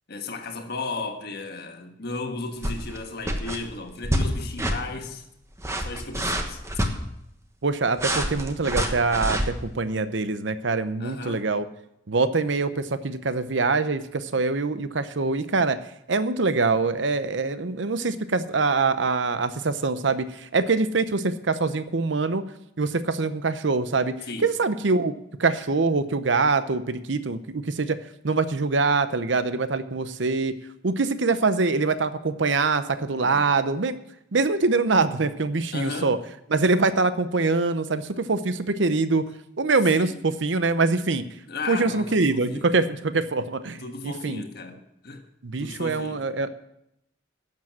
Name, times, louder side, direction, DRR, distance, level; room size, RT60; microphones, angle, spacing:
voice 1, 0.1-5.2 5.8-6.6 11.0-11.4 24.3-24.5 33.2-33.5 35.7-36.1 40.0-40.2 41.5-42.7 43.8-45.2 45.6-46.2, left 3 dB, 55° left, 1.5 m, -35 dB
sound 1, 2.6-3.0 3.2-3.6 4.0-4.3 4.6-4.8 5.5-6.9 8.0-9.5, equal, 15° right, 1.2 m, -26 dB
voice 2, 7.6-11.6 12.1-15.8 16.1-22.4 22.8-24.2 24.4-25.1 25.4-28.0 28.2-30.6 30.8-34.0 34.3-36.2 36.5-39.2 39.6-41.2 41.7-44.4 45.4-46.5, right 3 dB, 70° right, 0.8 m, -24 dB
12.0 x 7.6 x 7.4 m
head